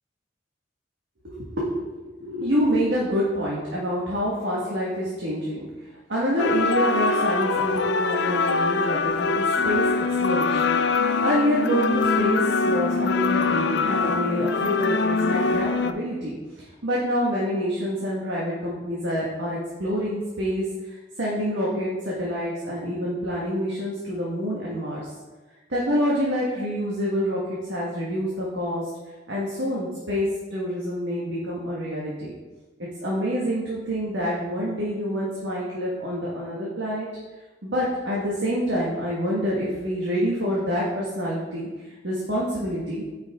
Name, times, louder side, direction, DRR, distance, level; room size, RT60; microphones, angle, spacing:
voice 1, 1.2-5.7 6.1-25.1 25.7-28.9 29.3-32.3 33.0-37.1 37.6-43.0, equal, 85° right, -6 dB, 1.6 m, -27 dB
sound 1, 6.4-15.9, left 4 dB, 70° left, 0.4 m, -23 dB
8.9 x 5.6 x 3.6 m, 1.2 s
head